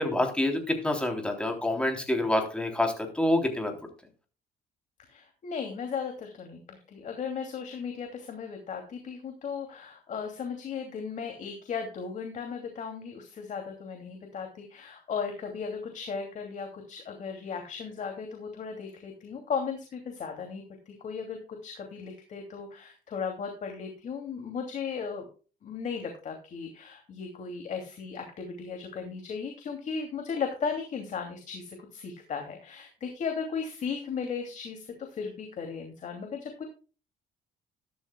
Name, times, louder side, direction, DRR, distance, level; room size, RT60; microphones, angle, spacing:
voice 1, 0.0-3.8, left 1 dB, 5° left, 3 dB, 3.4 m, -27 dB
voice 2, 5.1-25.2 25.6-36.6, left 6 dB, 50° left, 3 dB, 2.7 m, -36 dB
13.0 x 12.5 x 2.3 m, 0.36 s
cardioid pair, 110°, 17 cm